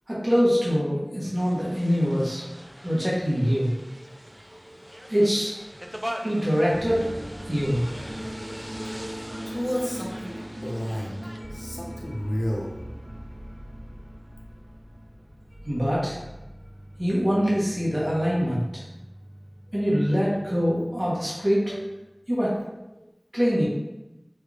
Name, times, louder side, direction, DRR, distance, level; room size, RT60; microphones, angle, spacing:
voice 1, 0.1-2.4 2.8-3.7 5.1-5.5 6.2-7.8 15.6-16.2 17.0-18.8 19.7-21.8 22.3-22.6 23.3-23.6, equal, 30° right, -7 dB, 1.0 m, -24 dB
sound 1, 1.4-11.4, equal, 15° right, 0.3 m, -41 dB
sound 2, 6.7-21.8, equal, 55° right, 1.3 m, -41 dB
voice 2, 9.4-11.2 11.5-12.8 21.7-21.9, equal, 55° left, -2 dB, 0.7 m, -31 dB
3.2 x 3.2 x 2.4 m, 0.96 s
wide cardioid pair, 40°, 0 cm